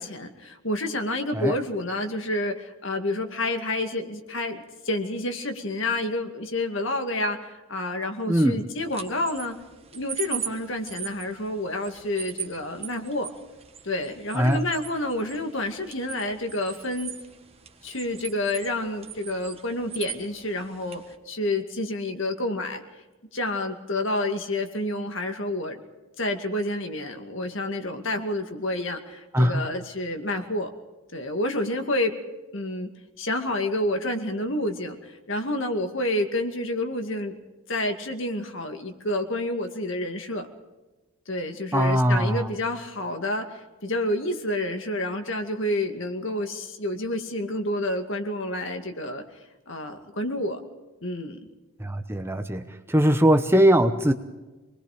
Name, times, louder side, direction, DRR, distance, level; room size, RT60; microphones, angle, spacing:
voice 1, 0.0-9.6 9.9-13.3 13.8-17.1 17.8-22.8 23.3-25.8 26.2-30.7 31.1-32.1 32.5-32.9 33.2-37.3 37.7-40.5 41.3-49.2 49.7-50.6 51.0-51.4, left 1 dB, 60° left, 6 dB, 2.3 m, -29 dB
voice 2, 8.3-8.6 14.3-14.7 29.3-29.7 41.7-42.5 51.8-54.1, equal, 10° right, 8 dB, 0.9 m, -21 dB
sound 1, 8.8-21.2, right 8 dB, 25° right, 1.6 m, -40 dB
27.0 x 20.5 x 5.1 m, 1.1 s
head